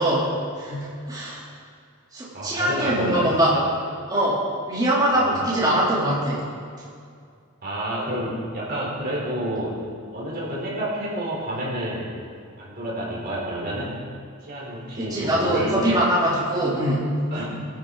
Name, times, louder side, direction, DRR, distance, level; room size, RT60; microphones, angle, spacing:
voice 1, 0.0-1.4 2.1-3.5 4.1-4.4 4.7-6.5 15.0-17.2, right 1 dB, 20° right, -9 dB, 3.7 m, -22 dB
voice 2, 2.3-3.7 5.2-5.5 7.6-9.8 10.1-12.1 12.6-14.0 14.4-15.8 17.3-17.5, equal, 45° right, -5 dB, 4.2 m, -29 dB
21.5 x 12.0 x 4.2 m, 2.2 s
head